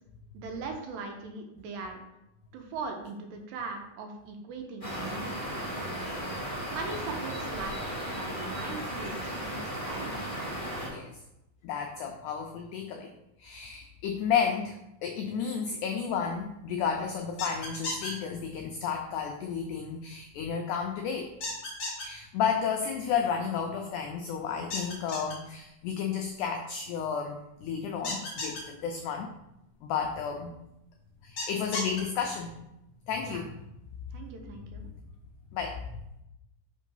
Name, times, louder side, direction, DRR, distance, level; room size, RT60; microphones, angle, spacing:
voice 1, 0.3-2.0 2.5-6.2 6.7-10.1 33.2-33.5 34.1-34.9, right 4 dB, 80° right, 3 dB, 2.4 m, -40 dB
sound 1, 4.8-10.9, right 1 dB, 20° left, 1.0 m, -35 dB
voice 2, 11.6-13.1 13.4-21.3 22.0-29.3 29.8-30.6 31.2-32.6 33.1-33.5 35.5-35.9, left 7 dB, 85° left, 4 dB, 1.7 m, -32 dB
sound 2, 17.4-18.1 21.4-22.1 24.7-25.3 28.0-28.6 31.4-32.0, left 2 dB, 65° left, 0.9 m, -34 dB
5.3 x 3.6 x 5.4 m, 0.87 s
omnidirectional pair, 4.1 m